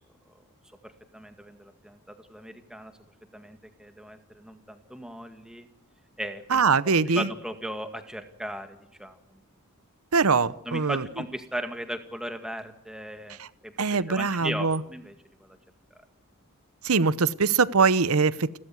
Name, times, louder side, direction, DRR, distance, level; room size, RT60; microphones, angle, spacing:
voice 1, 0.8-3.0 3.3-5.7 6.2-9.2 10.6-15.6, equal, 5° right, 7 dB, 2.0 m, -37 dB
voice 2, 6.5-7.3 10.1-11.0 13.8-14.8 16.8-18.6, right 4 dB, 70° right, 18 dB, 0.9 m, -22 dB
29.5 x 13.0 x 9.5 m, 0.75 s
head